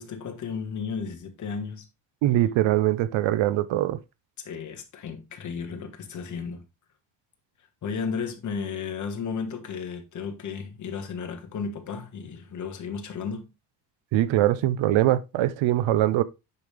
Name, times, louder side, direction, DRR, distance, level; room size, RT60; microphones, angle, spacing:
voice 1, 0.0-1.9 4.4-6.6 7.8-13.5, left 6 dB, 35° left, 1.6 m, -34 dB
voice 2, 2.2-4.0 14.1-16.2, right 14 dB, 70° right, 0.8 m, -22 dB
9.5 x 5.4 x 3.4 m
cardioid pair, 165°, 48 cm